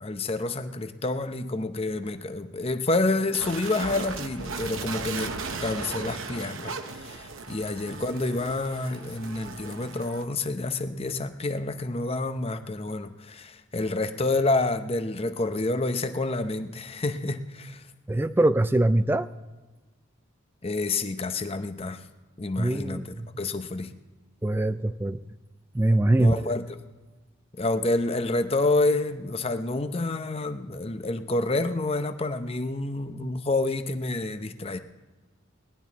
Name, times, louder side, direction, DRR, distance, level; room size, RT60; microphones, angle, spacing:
voice 1, 0.0-17.9 20.6-22.0 22.4-23.9 26.2-26.8 27.6-34.8, left 2 dB, 30° left, 9 dB, 0.7 m, -28 dB
sound 1, 3.3-10.2, right 4 dB, 70° right, 0.9 m, -37 dB
voice 2, 18.1-19.3 22.6-23.3 24.4-25.2 25.7-26.5, right 1 dB, 10° right, 13 dB, 0.4 m, -23 dB
19.0 x 11.5 x 4.1 m, 1.2 s
head